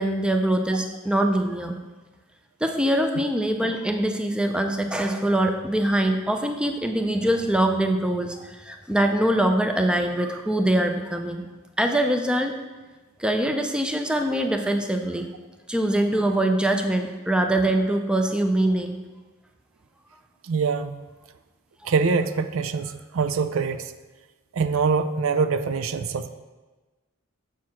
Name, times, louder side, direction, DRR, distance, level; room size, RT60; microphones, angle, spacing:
voice 1, 0.0-1.8 2.6-11.5 11.8-12.5 13.2-15.3 15.7-19.0 21.8-21.9, right 1 dB, 5° right, 5 dB, 0.5 m, -23 dB
voice 2, 20.4-21.0 21.8-23.9 24.5-26.3, right 5 dB, 70° right, 10 dB, 0.4 m, -24 dB
7.2 x 4.7 x 5.8 m, 1.2 s
head